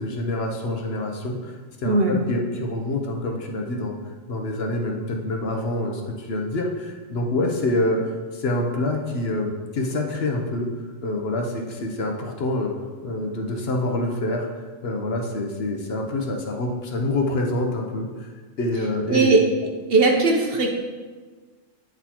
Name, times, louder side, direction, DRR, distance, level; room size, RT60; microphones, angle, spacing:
voice 1, 0.0-3.9 4.3-8.0 8.3-10.7 11.0-12.7 13.0-18.3 18.6-19.4, left 1 dB, 60° left, 1 dB, 0.9 m, -26 dB
voice 2, 1.8-2.2 19.1-19.4 19.9-20.7, right 3 dB, 55° right, 1 dB, 0.8 m, -18 dB
9.2 x 4.1 x 2.9 m, 1.4 s
omnidirectional pair, 1.3 m